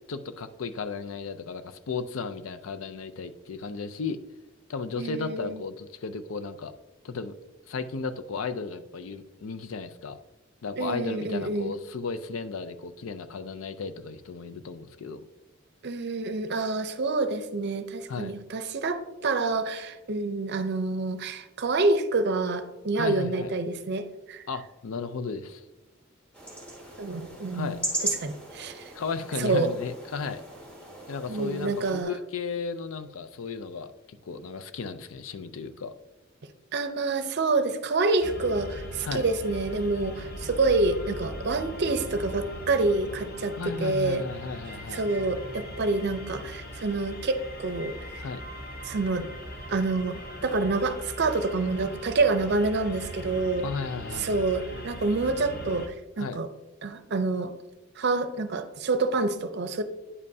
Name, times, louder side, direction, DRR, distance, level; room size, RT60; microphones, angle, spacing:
voice 1, 0.1-4.2 4.7-6.7 7.0-7.4 7.7-10.2 10.6-15.3 18.1-18.3 23.0-23.5 24.5-25.6 27.5-27.8 28.9-30.4 31.1-35.9 39.0-39.3 43.6-45.0 48.2-48.4 53.6-54.5 56.2-56.4, left 5 dB, 80° left, 10 dB, 0.5 m, -35 dB
voice 2, 5.0-5.6 10.8-11.7 15.8-24.4 27.0-27.8 28.0-28.9 29.4-29.7 31.3-32.1 36.7-43.5 43.8-44.2 44.9-48.2 48.8-49.3 49.7-53.7 54.2-56.5 56.8-57.5 58.0-59.8, right 3 dB, 55° right, 9 dB, 0.6 m, -27 dB
sound 1, 26.3-32.0, right 1 dB, 5° left, 1.6 m, -37 dB
sound 2, 38.2-55.9, equal, 50° left, 0.8 m, -40 dB
9.7 x 5.3 x 2.7 m, 1.1 s
head